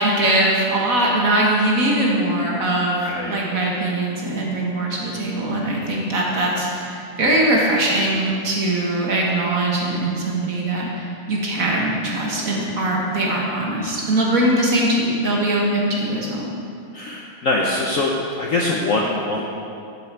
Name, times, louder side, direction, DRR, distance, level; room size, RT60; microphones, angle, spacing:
voice 1, 0.0-3.0 3.2-16.5, right 1 dB, 50° right, -3 dB, 1.4 m, -21 dB
voice 2, 3.0-3.4 16.9-18.1 18.4-19.4, left 2 dB, 60° left, -2 dB, 0.9 m, -23 dB
8.3 x 7.6 x 4.6 m, 2.5 s
omnidirectional pair, 2.2 m